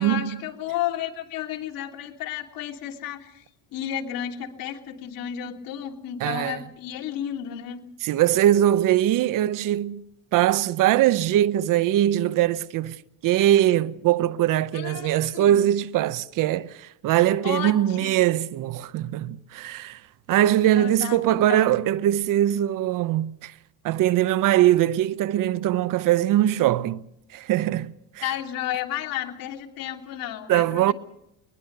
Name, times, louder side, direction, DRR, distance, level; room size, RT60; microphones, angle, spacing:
voice 1, 0.0-3.4 3.7-7.8 14.7-15.6 17.4-18.1 20.7-21.7 28.2-30.9, left 11 dB, 70° left, 3.1 m, -32 dB
voice 2, 6.2-6.6 8.0-10.0 10.3-13.0 13.2-20.0 20.3-23.5 23.8-27.0 27.3-28.2 30.5-30.9, right 12 dB, 65° right, 0.8 m, -21 dB
21.5 x 21.5 x 6.8 m
cardioid pair, 120°, 36 cm